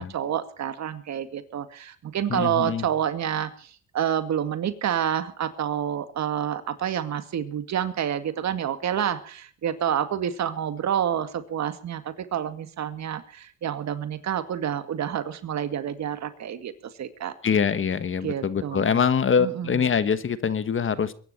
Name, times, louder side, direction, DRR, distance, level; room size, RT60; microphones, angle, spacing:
voice 1, 0.0-16.7 17.0-17.3 18.2-19.0 19.4-19.8, right 9 dB, 65° right, 10 dB, 2.1 m, -28 dB
voice 2, 2.3-2.8 17.4-21.1, left 6 dB, 40° left, 14 dB, 1.4 m, -24 dB
23.0 x 11.0 x 4.3 m, 0.43 s
cardioid pair, 90°, 30 cm